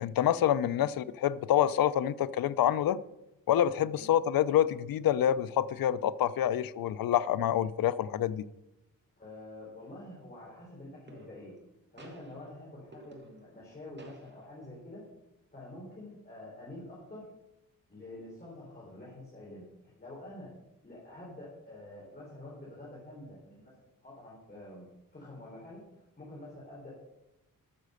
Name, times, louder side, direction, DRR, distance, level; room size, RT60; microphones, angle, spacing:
voice 1, 0.0-3.0 3.5-8.4, left 11 dB, 90° left, 0.6 m, -27 dB
voice 2, 9.2-11.5 11.9-15.0 15.5-17.3 17.9-19.6 20.0-20.5 20.8-23.7 24.0-24.9 25.1-25.8 26.2-26.9, left 1 dB, 25° left, 3.9 m, -47 dB
sound 1, 9.8-10.2 11.1-11.7 12.0-13.7 14.0-14.7, right 1 dB, 30° right, 2.1 m, -54 dB
12.5 x 6.7 x 6.5 m
cardioid pair, 100°, 34 cm